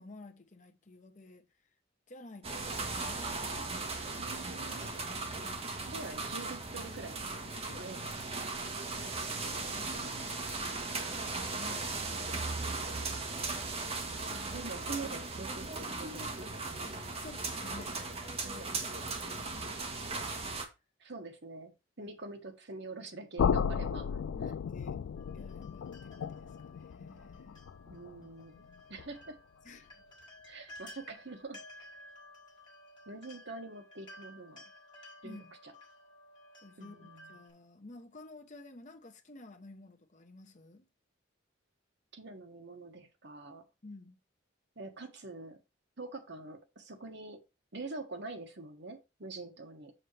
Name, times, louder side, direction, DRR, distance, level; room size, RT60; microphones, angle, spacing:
voice 1, 0.0-1.5 2.1-3.9 7.7-7.9 8.9-9.6 10.9-12.7 16.8-19.7 19.9-20.2 22.0-22.1 24.3-25.0 25.3-27.6 29.6-30.0 35.2-35.5 36.6-40.9 43.8-44.2, left 2 dB, 40° left, 1.0 m, -53 dB
sound 1, 2.4-20.7, right 3 dB, 30° right, 1.3 m, -37 dB
voice 2, 4.2-5.0 5.9-7.3 7.7-8.1 14.3-16.6 18.4-18.7 21.0-24.2 27.9-29.4 30.5-31.6 33.1-34.6 35.2-35.7 36.8-37.4 42.1-43.6 44.7-45.6 46.0-47.4 47.7-49.9, right 3 dB, 65° right, 1.5 m, -45 dB
sound 2, 23.4-29.3, left 7 dB, 90° left, 0.3 m, -35 dB
sound 3, 25.1-37.5, left 1 dB, 25° left, 3.9 m, -55 dB
7.4 x 6.6 x 3.3 m
head